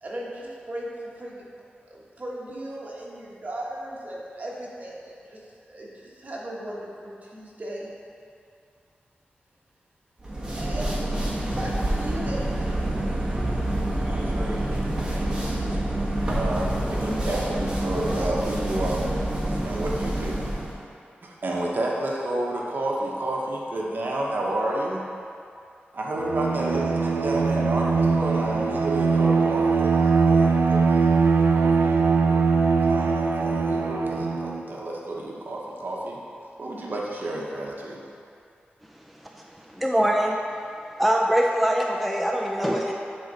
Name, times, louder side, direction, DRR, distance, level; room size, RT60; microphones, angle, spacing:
voice 1, 0.0-1.5 1.9-7.9 10.5-11.1 11.6-12.8 15.2-15.3, right 1 dB, 40° right, -4 dB, 1.4 m, -37 dB
sound 1, 10.2-20.7, right 1 dB, 20° right, 1.3 m, -27 dB
voice 2, 14.0-14.8 15.1-15.6 16.3-19.1 19.6-20.4 21.2-25.0 25.9-32.4 32.9-36.2 36.6-38.0, right 1 dB, 60° right, -3 dB, 0.9 m, -30 dB
Bowed string instrument, 26.1-34.6, right 4 dB, 80° right, 0.4 m, -21 dB
voice 3, 39.7-40.4 41.0-42.9, equal, ahead, 0 dB, 0.4 m, -22 dB
9.9 x 3.8 x 4.0 m, 2.4 s
wide cardioid pair, 90°, 4 cm